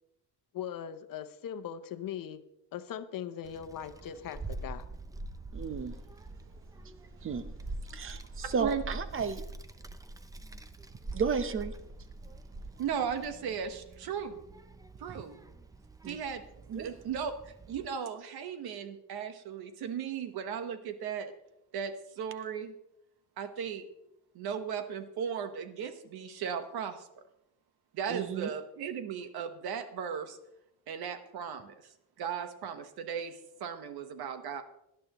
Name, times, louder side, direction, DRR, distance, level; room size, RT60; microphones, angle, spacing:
voice 1, 0.5-2.4 2.7-4.9, left 9 dB, 55° left, 10 dB, 0.9 m, -40 dB
Child speech kid speaking, 3.4-17.9, right 2 dB, 10° right, 0.4 m, -44 dB
voice 2, 5.5-6.0 7.2-7.4 7.9-9.4 11.1-11.7 16.0-16.2 16.7-16.9 28.1-28.5, right 6 dB, 35° right, 12 dB, 0.8 m, -33 dB
voice 3, 12.8-14.4 15.0-15.4 16.1-16.4 16.7-21.3 21.7-22.7 23.4-23.8 24.3-27.1 27.9-30.4 30.9-31.8 32.2-34.6, right 7 dB, 70° right, 9 dB, 1.3 m, -36 dB
18.5 x 11.5 x 3.1 m, 0.82 s
cardioid pair, 150°, 39 cm